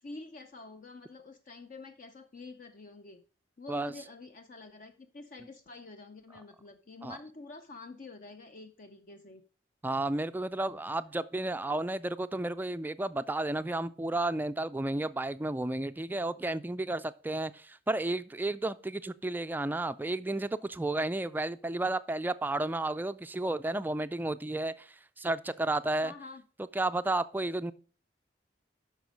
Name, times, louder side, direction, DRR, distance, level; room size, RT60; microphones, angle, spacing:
voice 1, 0.0-3.2 3.6-9.4 26.0-26.4, left 3 dB, 45° left, 0.6 m, -47 dB
voice 2, 9.8-26.1 26.7-27.7, right 2 dB, 10° right, 0.3 m, -32 dB
9.3 x 6.2 x 5.1 m
head